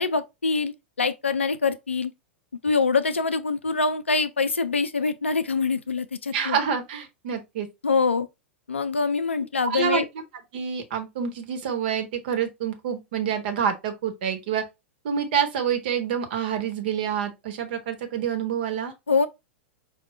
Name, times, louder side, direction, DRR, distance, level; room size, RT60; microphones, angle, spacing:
voice 1, 0.0-2.1 2.6-6.6 7.8-8.3 8.7-10.0 19.1-19.3, left 4 dB, 85° left, 0.5 m, -24 dB
voice 2, 6.3-7.7 9.6-10.2 10.5-14.6 15.0-18.9, right 8 dB, 55° right, 1.0 m, -27 dB
4.9 x 2.3 x 3.1 m
figure-of-eight pair, 100°, 6 cm